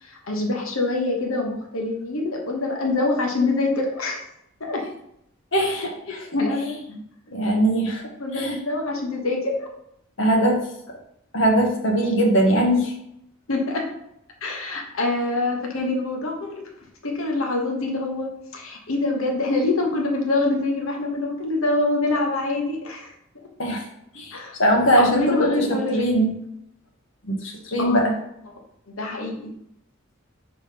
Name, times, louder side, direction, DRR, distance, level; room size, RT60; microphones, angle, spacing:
voice 1, 0.0-4.2 4.6-4.9 6.1-6.8 8.2-9.7 13.5-13.9 14.4-16.7 17.0-23.1 23.4-23.5 24.3-24.6 25.0-26.1 27.8-28.1 28.9-29.5, left 2 dB, 80° left, 1 dB, 1.1 m, -25 dB
voice 2, 5.5-6.2 7.3-8.0 8.3-8.6 10.2-10.6 11.3-12.9 23.6-23.8 24.1-25.6 25.9-26.3 27.3-28.1, right 1 dB, 65° left, 0 dB, 1.4 m, -21 dB
5.2 x 3.8 x 5.1 m, 0.76 s
head